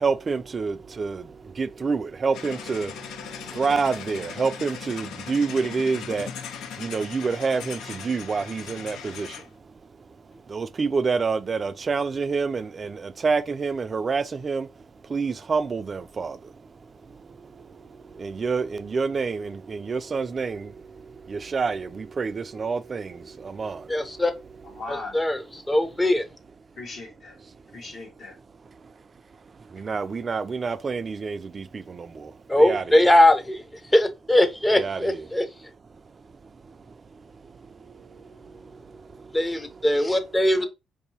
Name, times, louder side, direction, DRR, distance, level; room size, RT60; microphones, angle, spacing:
voice 1, 0.0-1.2 1.6-2.9 3.6-6.3 6.8-9.3 10.5-14.7 15.1-16.4 18.2-20.7 21.3-23.1 23.5-23.8 29.8-32.1 32.6-32.8 34.7-35.2, right 4 dB, 40° right, 0.3 m, -27 dB
sound 1, 2.3-9.5, left 7 dB, 85° left, 0.4 m, -38 dB
voice 2, 23.9-24.3 24.9-25.4 25.7-26.3 32.5-33.6 33.9-35.5 39.3-40.7, left 1 dB, 15° left, 0.6 m, -20 dB
voice 3, 24.6-25.2 26.8-27.4 27.7-28.4 40.5-40.7, left 3 dB, 60° left, 1.2 m, -38 dB
4.7 x 2.7 x 2.7 m
cardioid pair, 90°, 0 cm